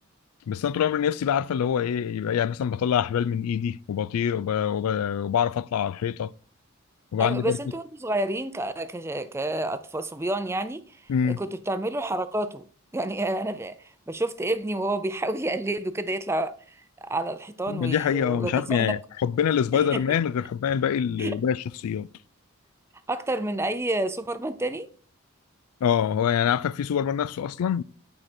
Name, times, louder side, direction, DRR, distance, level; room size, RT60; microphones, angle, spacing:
voice 1, 0.5-6.3 7.1-7.6 11.1-11.4 17.7-22.1 25.8-27.8, left 8 dB, 90° left, 0.3 m, -25 dB
voice 2, 7.2-10.8 11.4-12.6 12.9-18.9 19.7-20.0 21.2-21.3 23.1-24.9, right 1 dB, 10° right, 0.4 m, -29 dB
8.9 x 4.8 x 4.3 m
head